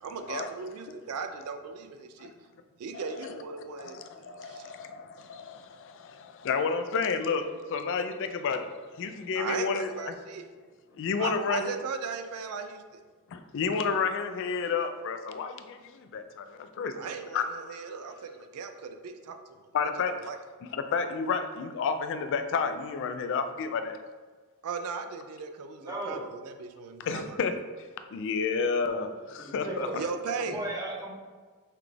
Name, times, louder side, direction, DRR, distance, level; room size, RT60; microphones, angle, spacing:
voice 1, 0.0-2.3 2.8-5.0 9.4-10.4 11.2-13.0 17.0-19.4 19.8-20.4 24.6-27.4 29.9-30.6, right 5 dB, 75° right, 7 dB, 0.4 m, -37 dB
voice 2, 2.9-3.3 3.9-8.7 9.0-10.1 11.0-11.8 13.3-17.0 17.3-17.4 19.7-20.1 20.7-24.0 27.0-27.5 28.1-30.1, left 5 dB, 55° left, 8 dB, 0.3 m, -31 dB
voice 3, 25.8-26.2 29.4-30.0 30.4-31.1, right 1 dB, 15° right, -3 dB, 0.7 m, -35 dB
5.7 x 2.3 x 3.2 m, 1.4 s
head